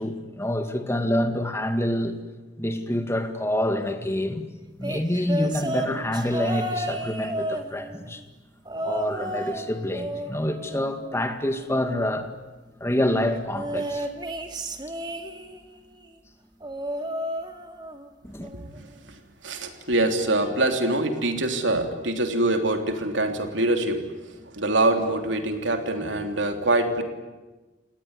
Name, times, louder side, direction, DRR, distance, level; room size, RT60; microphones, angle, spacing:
voice 1, 0.0-2.2 2.6-4.5 4.8-8.2 8.8-12.3 12.8-14.1 18.2-18.5, left 1 dB, 15° left, 2.1 m, -27 dB
sound 1, 4.8-8.1 8.7-9.7 9.9-11.5 13.5-15.7 16.6-18.1 18.4-18.8 19.9-20.0, right 1 dB, 25° right, 2.1 m, -32 dB
voice 2, 18.5-19.2 19.4-24.0 24.5-27.0, right 2 dB, 75° right, 3.2 m, -24 dB
29.0 x 19.0 x 9.7 m
head